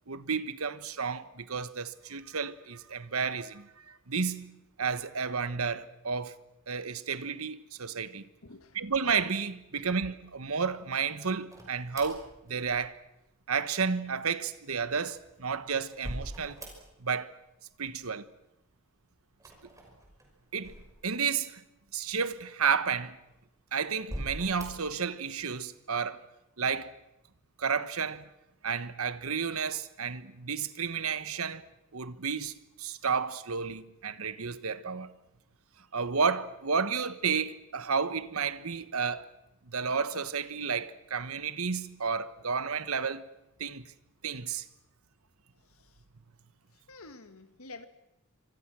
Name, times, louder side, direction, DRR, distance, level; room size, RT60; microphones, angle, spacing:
voice 1, 0.1-6.4 6.7-8.2 8.7-13.0 13.5-16.6 17.0-17.3 17.8-18.3 20.5-20.7 21.0-21.6 21.9-23.2 23.7-26.2 26.6-26.9 27.6-28.3 28.6-31.6 31.9-35.1 35.9-39.3 39.7-43.2 43.6-43.9 44.2-44.7, right 5 dB, 75° right, 1.2 m, -32 dB
voice 2, 8.4-8.8 9.7-9.9 45.6-46.0 46.7-47.9, left 3 dB, 75° left, 1.8 m, -50 dB
sound 1, 11.5-13.2 15.0-17.2 17.5-18.2 19.3-21.5 22.1-22.2 23.0-23.5 24.0-25.0, right 1 dB, 15° right, 5.9 m, -43 dB
27.5 x 24.5 x 6.2 m
head